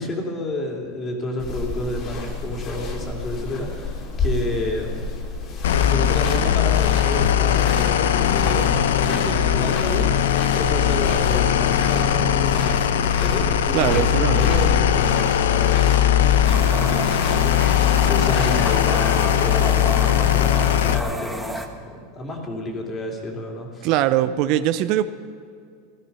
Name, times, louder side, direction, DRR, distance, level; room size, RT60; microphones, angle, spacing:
voice 1, 0.0-5.1 5.9-17.5 17.9-23.9, left 1 dB, 25° left, 1 dB, 2.8 m, -30 dB
sound 1, 1.4-20.9, left 3 dB, 40° left, 2.7 m, -32 dB
sound 2, 5.6-21.0, left 10 dB, 90° left, 0.7 m, -19 dB
voice 2, 13.7-14.7 23.8-25.0, right 12 dB, 55° right, 12 dB, 0.6 m, -21 dB
sound 3, 16.4-21.7, right 1 dB, ahead, 1.2 m, -31 dB
16.0 x 12.5 x 5.5 m, 2.2 s
supercardioid pair, 120°, 0 cm